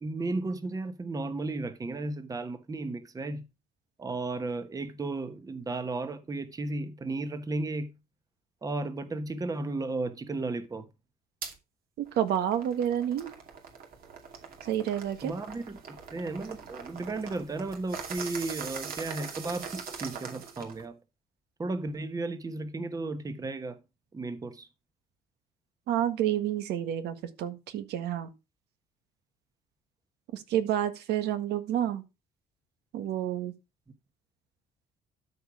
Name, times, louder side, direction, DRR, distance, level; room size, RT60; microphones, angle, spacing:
voice 1, 0.0-3.4 4.0-7.9 8.6-10.8 15.2-21.0 21.6-23.8 24.1-24.7, right 2 dB, 20° right, 1.1 m, -34 dB
sound 1, 11.4-11.5 12.0-20.8, right 6 dB, 60° right, 2.5 m, -42 dB
voice 2, 12.0-13.3 14.7-15.3 25.9-28.3 30.3-32.0 32.9-33.5, right 10 dB, 75° right, 1.6 m, -29 dB
12.5 x 4.7 x 4.8 m
cardioid pair, 110°, 17 cm